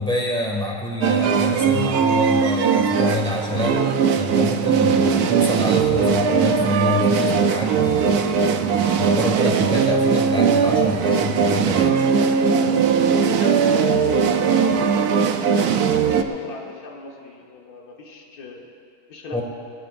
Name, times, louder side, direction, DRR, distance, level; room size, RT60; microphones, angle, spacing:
voice 1, 0.0-3.7 4.2-12.0 19.3-19.4, left 2 dB, 5° left, -1 dB, 1.8 m, -27 dB
sound 1, 1.0-16.2, right 6 dB, 70° right, 1.2 m, -19 dB
voice 2, 13.3-18.7 19.1-19.4, left 3 dB, 65° left, -1 dB, 1.9 m, -36 dB
19.5 x 19.5 x 2.6 m, 2.4 s
omnidirectional pair, 1.7 m